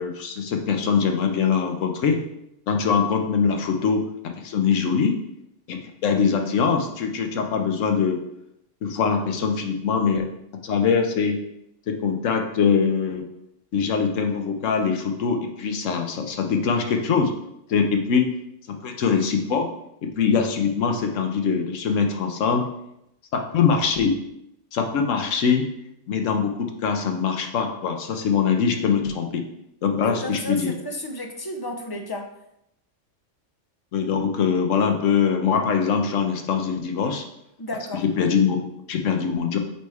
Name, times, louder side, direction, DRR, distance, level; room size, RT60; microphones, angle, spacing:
voice 1, 0.0-2.2 2.7-4.0 4.4-5.2 5.7-8.2 8.8-10.3 10.6-11.4 11.9-13.2 13.7-17.3 17.7-18.3 18.7-19.7 20.0-22.7 23.3-24.1 24.7-25.7 26.1-29.4 29.8-30.7 33.9-37.2 38.0-38.6 38.9-39.6, left 6 dB, 85° left, 4 dB, 1.2 m, -22 dB
voice 2, 30.0-32.3 37.6-38.0, left 1 dB, 30° left, 3 dB, 0.4 m, -32 dB
8.6 x 3.2 x 3.5 m, 0.79 s
omnidirectional pair, 1.3 m